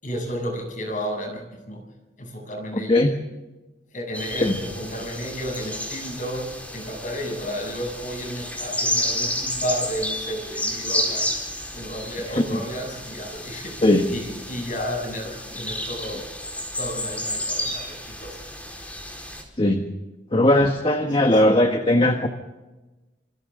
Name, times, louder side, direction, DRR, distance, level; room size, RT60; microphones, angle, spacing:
voice 1, 0.0-1.8 2.2-3.0 3.9-16.3 16.8-18.5 21.2-21.6, equal, 50° left, 2 dB, 7.8 m, -32 dB
voice 2, 2.7-3.1 4.4-4.6 12.5-12.6 13.8-14.1 19.6-19.9 20.3-22.3, left 1 dB, 30° left, 5 dB, 1.4 m, -19 dB
sound 1, 4.1-19.4, left 1 dB, 10° left, 4.5 m, -31 dB
28.0 x 26.5 x 3.8 m, 1.1 s
head